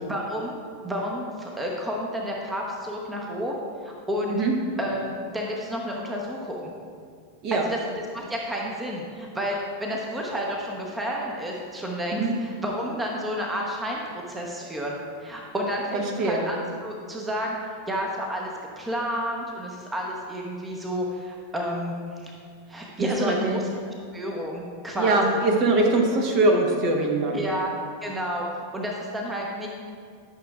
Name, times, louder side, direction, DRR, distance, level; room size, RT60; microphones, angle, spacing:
voice 1, 0.1-0.5 0.8-4.4 4.8-6.7 7.5-14.0 14.3-16.6 16.8-17.6 17.9-22.3 22.7-25.2 27.3-27.7 28.0-29.7, equal, 10° right, -1 dB, 0.9 m, -31 dB
voice 2, 15.9-16.4 23.0-23.6 24.9-27.4, right 2 dB, 40° right, 1 dB, 1.0 m, -22 dB
11.5 x 6.1 x 2.4 m, 2.1 s
figure-of-eight pair, 90°, 0 cm